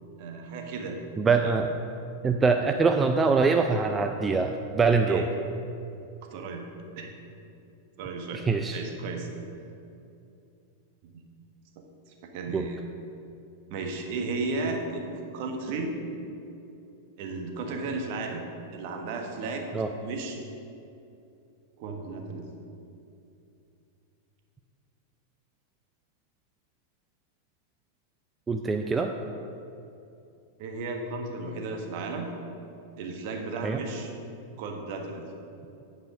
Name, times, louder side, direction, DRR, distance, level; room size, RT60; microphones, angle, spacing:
voice 1, 0.2-1.0 1.4-1.6 5.1-5.2 6.3-6.6 7.0-7.1 8.0-8.5 8.7-9.3 12.3-12.8 13.7-15.9 17.2-18.5 18.7-19.7 20.0-20.4 21.8-22.4 30.6-32.3 33.0-34.1 34.6-35.2, right 3 dB, 55° right, 2 dB, 1.3 m, -34 dB
voice 2, 1.2-1.8 2.2-5.3 8.5-8.8 12.5-12.7 19.7-19.9 28.5-29.1 33.6-33.8, right 4 dB, 20° right, 5 dB, 0.4 m, -24 dB
8.9 x 5.0 x 6.1 m, 2.7 s
hypercardioid pair, 95°, 0 cm